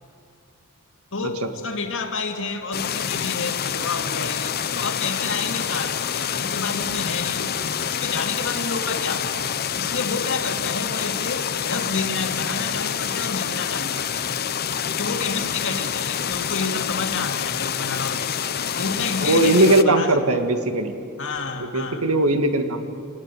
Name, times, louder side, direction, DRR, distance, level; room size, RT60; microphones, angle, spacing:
voice 1, 1.1-9.5 9.8-14.4 14.9-18.5 18.8-20.4 21.2-22.1, left 4 dB, 60° left, 5 dB, 2.2 m, -30 dB
sound 1, 2.7-19.8, left 8 dB, 45° left, 0.8 m, -27 dB
voice 2, 19.2-20.9 21.7-22.8, right 2 dB, 75° right, 6 dB, 2.0 m, -19 dB
27.0 x 20.0 x 8.4 m, 2.4 s
head